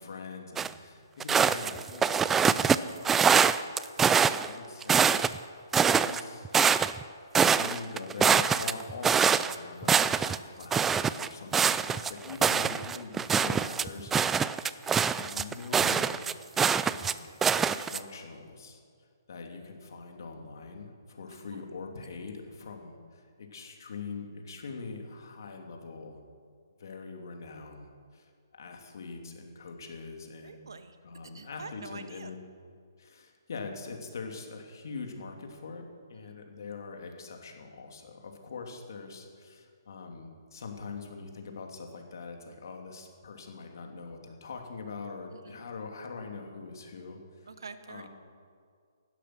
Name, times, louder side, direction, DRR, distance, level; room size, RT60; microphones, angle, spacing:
voice 1, 0.0-3.3 4.2-5.2 6.0-6.5 7.5-14.5 15.2-16.2 16.9-18.8 19.3-26.2 26.8-30.7 31.0-32.4 33.0-47.5 47.9-48.1, left 4 dB, 65° left, 3 dB, 2.8 m, -43 dB
sound 1, 0.6-0.7 1.2-2.8 3.0-4.5 4.8-5.4 5.7-7.0 7.3-9.5 9.8-10.4 10.7-17.1 17.4-18.0, right 6 dB, 10° right, 0.3 m, -24 dB
voice 2, 21.3-21.7 30.4-31.0 31.3-32.3 36.2-36.3 45.3-45.5 47.5-48.1, right 4 dB, 85° right, 9 dB, 1.4 m, -46 dB
16.0 x 12.0 x 6.1 m, 2.2 s
hypercardioid pair, 155°, 2 cm